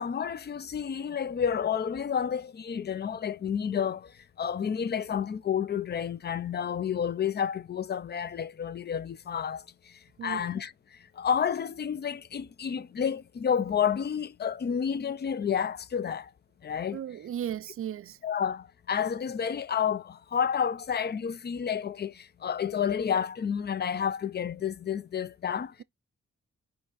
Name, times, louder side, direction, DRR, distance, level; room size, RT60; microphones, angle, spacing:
voice 1, 0.0-4.1 4.4-9.6 10.2-10.7 11.2-16.3 16.6-17.0 18.2-25.7, left 8 dB, 35° left, 0.4 m, -30 dB
voice 2, 10.2-10.5 16.9-18.2, right 10 dB, 45° right, 0.4 m, -35 dB
4.6 x 2.6 x 3.8 m
supercardioid pair, 45°, 31 cm